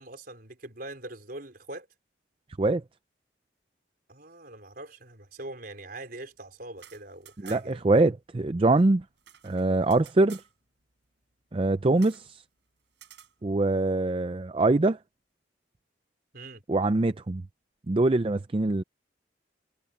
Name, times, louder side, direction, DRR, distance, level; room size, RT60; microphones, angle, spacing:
voice 1, 0.0-1.9 4.1-7.8 16.3-16.6, right 2 dB, 55° right, 4.6 m, -42 dB
sound 1, 6.7-7.9 8.2-8.3 8.5-10.5 12.0-12.3 12.9-13.3, right 10 dB, 75° right, 6.8 m, -52 dB
voice 2, 7.4-9.0 9.4-10.4 11.5-12.4 13.4-15.0 16.7-17.4 17.9-18.8, right 2 dB, 30° right, 0.5 m, -23 dB
head